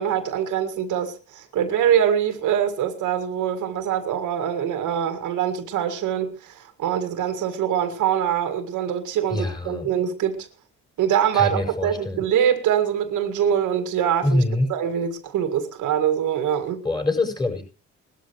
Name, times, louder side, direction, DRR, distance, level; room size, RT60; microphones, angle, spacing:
voice 1, 0.0-10.5 11.0-14.4 14.7-16.8, right 9 dB, 85° right, 2.2 m, -24 dB
voice 2, 9.3-9.9 11.3-12.2 14.2-14.7 16.8-17.6, left 2 dB, 15° left, 6.3 m, -24 dB
20.0 x 13.0 x 3.2 m
cardioid pair, 90°, 30 cm